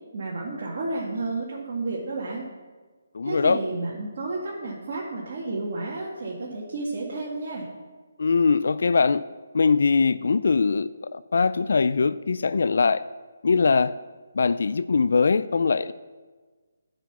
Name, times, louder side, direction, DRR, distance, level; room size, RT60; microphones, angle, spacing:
voice 1, 0.1-2.4 3.2-7.7, right 2 dB, 45° right, 2.0 m, -31 dB
voice 2, 3.1-3.6 8.2-9.2 9.5-13.0 13.4-13.9 14.3-15.9, left 4 dB, 65° left, 0.4 m, -21 dB
10.5 x 5.8 x 7.1 m
figure-of-eight pair, 150°, 0 cm